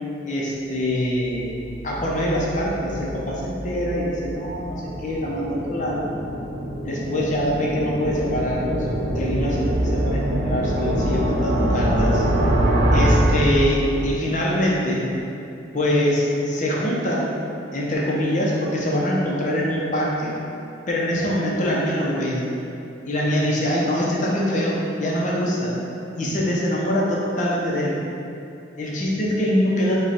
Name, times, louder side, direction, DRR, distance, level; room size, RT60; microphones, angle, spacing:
voice 1, 0.2-1.6 1.8-6.1 6.8-12.2 12.9-15.1 15.7-17.3 17.7-20.3 20.9-22.4 23.0-25.8 26.1-28.0 28.8-30.0, equal, 40° left, -4 dB, 0.7 m, -24 dB
sound 1, 1.3-14.2, right 1 dB, 85° right, 0.7 m, -24 dB
5.1 x 2.4 x 4.3 m, 2.7 s
head